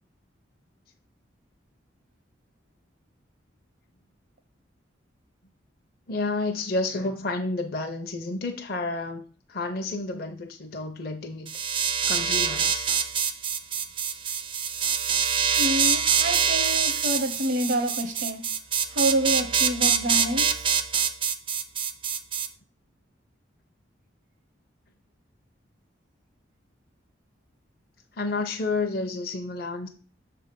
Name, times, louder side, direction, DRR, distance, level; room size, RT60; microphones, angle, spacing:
voice 1, 6.1-9.2 9.5-11.5 11.8-12.9 28.1-29.9, left 3 dB, 50° left, 0.7 m, -30 dB
sound 1, 11.5-22.5, right 7 dB, 25° right, 0.4 m, -25 dB
voice 2, 15.5-18.4 18.9-20.9, equal, 65° right, 0.8 m, -28 dB
7.0 x 3.4 x 5.2 m
head